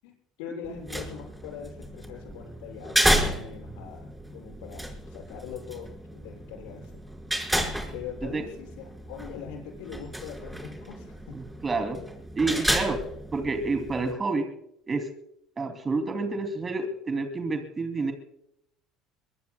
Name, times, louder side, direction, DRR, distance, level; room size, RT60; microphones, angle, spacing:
voice 1, 0.0-7.0 7.9-11.4, left 7 dB, 75° left, 1 dB, 6.9 m, -42 dB
sound 1, 0.6-14.1, equal, 5° right, 5.3 m, -32 dB
voice 2, 11.3-12.0 12.4-13.0 13.3-14.5 14.8-15.1 15.6-18.1, right 3 dB, 30° right, 5 dB, 2.8 m, -29 dB
24.5 x 23.0 x 2.3 m, 0.74 s
hypercardioid pair, 70°, 0 cm